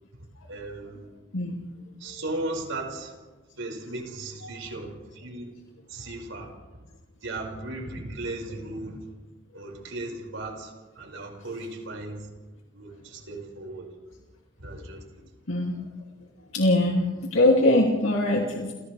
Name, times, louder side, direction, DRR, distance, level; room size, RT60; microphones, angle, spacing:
voice 1, 0.5-1.0 2.0-3.1 3.6-5.5 5.9-6.5 7.2-9.0 9.5-12.3 12.7-13.9 14.6-15.0, right 2 dB, 80° right, 0 dB, 5.8 m, -36 dB
voice 2, 15.5-15.8 16.5-18.7, left 1 dB, 90° left, -2 dB, 2.7 m, -22 dB
30.0 x 29.5 x 3.5 m, 1.2 s
head